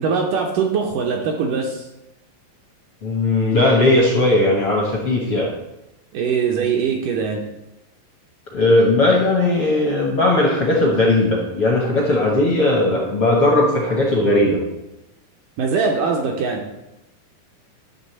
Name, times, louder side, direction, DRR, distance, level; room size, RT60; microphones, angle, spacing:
voice 1, 0.0-1.9 6.1-7.4 15.6-16.6, right 5 dB, 70° right, 1 dB, 2.1 m, -21 dB
voice 2, 3.0-5.5 8.5-14.6, left 2 dB, 60° left, -2 dB, 1.4 m, -17 dB
11.0 x 3.7 x 7.4 m, 0.94 s
omnidirectional pair, 4.4 m